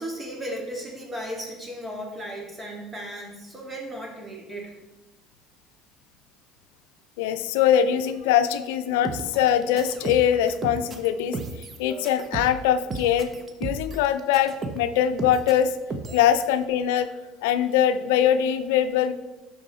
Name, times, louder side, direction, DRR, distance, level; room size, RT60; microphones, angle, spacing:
voice 1, 0.0-4.8, right 1 dB, 15° right, -1 dB, 2.8 m, -35 dB
voice 2, 7.2-13.3 13.6-15.7 16.1-17.1 17.4-19.1, left 9 dB, 85° left, 11 dB, 0.5 m, -22 dB
sound 1, 9.0-14.9 15.2-15.6 15.9-16.3, right 3 dB, 35° right, 1.1 m, -34 dB
12.5 x 4.8 x 4.2 m, 1.1 s
supercardioid pair, 95°, 0 cm